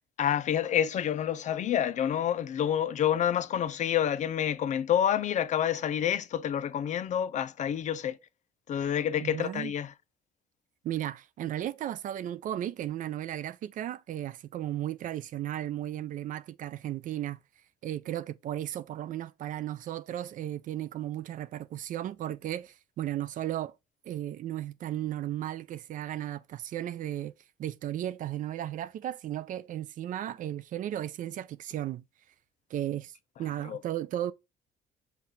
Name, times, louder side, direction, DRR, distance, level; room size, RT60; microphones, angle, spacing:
voice 1, 0.2-8.2 8.7-9.9 33.6-33.8, left 9 dB, 45° left, 0.4 m, -28 dB
voice 2, 9.2-9.7 10.8-17.4 17.8-23.7 24.0-27.3 27.6-32.0 32.7-34.3, right 12 dB, 50° right, 0.4 m, -35 dB
5.7 x 2.4 x 3.9 m
cardioid pair, 110°, 17 cm